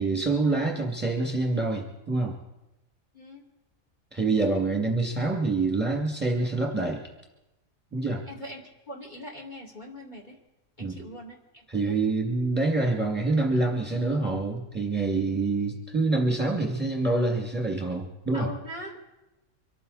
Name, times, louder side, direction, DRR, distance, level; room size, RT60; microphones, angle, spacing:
voice 1, 0.0-2.4 4.1-7.0 7.9-8.2 10.8-11.0 11.7-18.5, right 3 dB, 10° right, 0 dB, 2.3 m, -26 dB
voice 2, 8.3-10.4 10.8-11.9 18.3-19.0, equal, 35° left, 0 dB, 2.6 m, -41 dB
24.5 x 14.0 x 4.2 m, 0.97 s
omnidirectional pair, 1.4 m